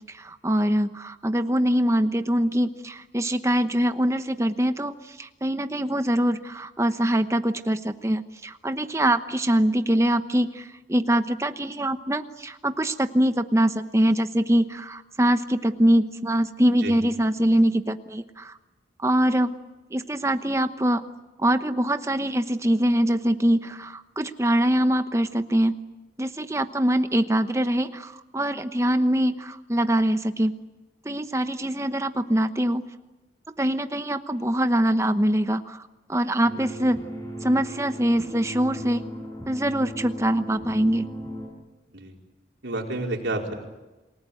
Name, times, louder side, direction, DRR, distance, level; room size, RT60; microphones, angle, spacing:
voice 1, 0.1-18.6 19.0-19.5 19.9-21.0 21.4-25.8 26.2-30.6 31.0-32.8 33.6-35.8 36.1-37.0 37.4-39.0 39.5-41.0, right 1 dB, 15° right, 9 dB, 1.0 m, -23 dB
sound 1, 36.4-41.5, equal, 20° left, 6.3 m, -37 dB
voice 2, 42.6-43.5, right 2 dB, 90° right, 0 dB, 4.6 m, -29 dB
28.0 x 18.5 x 9.2 m, 1.1 s
head